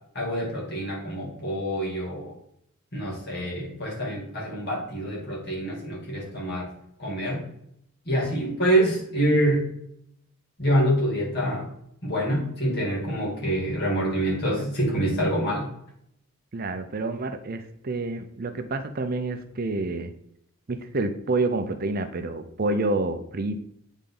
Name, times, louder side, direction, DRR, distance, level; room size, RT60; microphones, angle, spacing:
voice 1, 0.1-2.3 2.9-6.7 7.0-7.5 8.1-9.7 10.6-11.7 12.0-15.7, right 1 dB, 50° left, -3 dB, 2.6 m, -26 dB
voice 2, 16.5-20.1 20.7-23.7, right 2 dB, 45° right, 8 dB, 0.5 m, -28 dB
8.5 x 4.0 x 3.8 m, 0.72 s
head